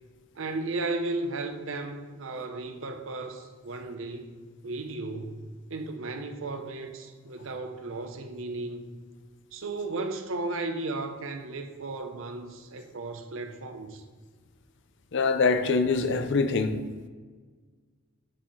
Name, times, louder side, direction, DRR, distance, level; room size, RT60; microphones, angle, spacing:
voice 1, 0.4-4.4 4.6-8.8 9.5-14.0, right 2 dB, 65° right, 7 dB, 0.7 m, -35 dB
voice 2, 15.1-16.8, left 4 dB, 55° left, 9 dB, 0.5 m, -24 dB
7.3 x 4.8 x 4.0 m, 1.5 s
head